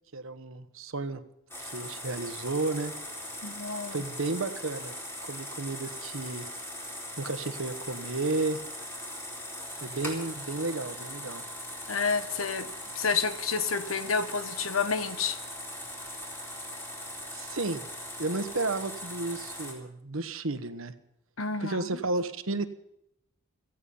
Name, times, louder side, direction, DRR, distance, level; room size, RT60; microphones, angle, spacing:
voice 1, 0.1-1.2 1.6-2.9 3.9-4.9 5.2-6.5 7.2-8.6 9.8-11.4 17.3-17.9 18.2-20.9 21.6-22.7, right 3 dB, 75° right, 10 dB, 1.2 m, -32 dB
sound 1, 1.5-19.7, left 1 dB, 10° left, 4.3 m, -40 dB
voice 2, 3.4-4.0 11.9-15.4 21.4-21.9, left 5 dB, 80° left, 10 dB, 1.3 m, -30 dB
17.5 x 14.5 x 5.5 m, 0.79 s
head